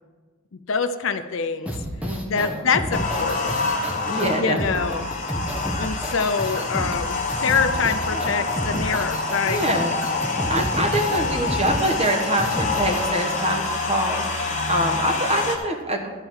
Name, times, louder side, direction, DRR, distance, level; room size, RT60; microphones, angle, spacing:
voice 1, 0.7-1.7 2.2-3.6 4.4-5.1 5.8-9.6 10.1-10.4, left 5 dB, 65° left, 9 dB, 0.6 m, -25 dB
sound 1, 1.7-13.1, equal, 5° right, 0.9 m, -30 dB
voice 2, 2.0-2.6 4.0-5.1 8.1-8.5 9.4-16.1, right 1 dB, 30° right, 3 dB, 1.1 m, -25 dB
sound 2, 2.9-15.6, left 3 dB, 35° left, 1.3 m, -27 dB
12.5 x 4.5 x 7.2 m, 1.4 s
head